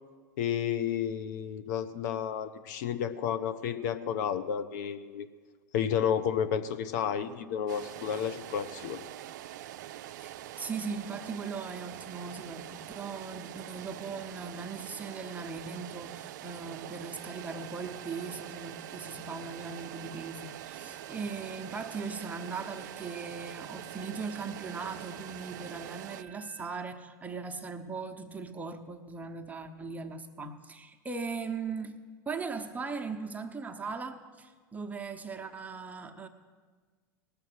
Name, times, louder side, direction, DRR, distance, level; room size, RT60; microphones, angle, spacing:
voice 1, 0.4-5.3 5.7-9.0, left 8 dB, 65° left, 10 dB, 0.7 m, -31 dB
sound 1, 7.7-26.2, right 13 dB, 65° right, 0.4 m, -44 dB
voice 2, 10.2-32.0 32.3-36.3, right 4 dB, 15° right, 5 dB, 0.9 m, -39 dB
sound 2, 17.2-26.9, right 8 dB, 45° right, 1.0 m, -53 dB
19.0 x 6.8 x 6.3 m, 1.5 s
hypercardioid pair, 90°, 10 cm